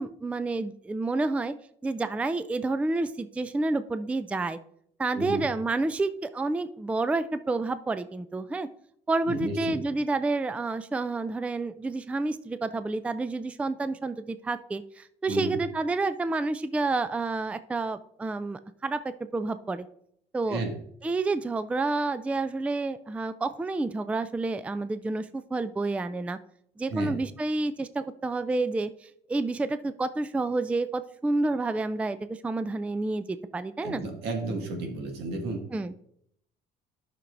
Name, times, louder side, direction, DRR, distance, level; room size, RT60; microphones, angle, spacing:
voice 1, 0.0-1.5 1.8-4.6 5.0-8.7 9.1-19.9 20.3-20.6 21.0-26.4 26.8-34.0 35.7-35.9, right 3 dB, 10° right, 12 dB, 0.3 m, -29 dB
voice 2, 5.1-5.4 9.3-9.8 15.3-15.6 20.5-20.7 26.9-27.1 33.8-35.6, right 2 dB, 85° right, 2 dB, 1.7 m, -32 dB
12.0 x 5.9 x 2.6 m, 0.71 s
cardioid pair, 110°, 17 cm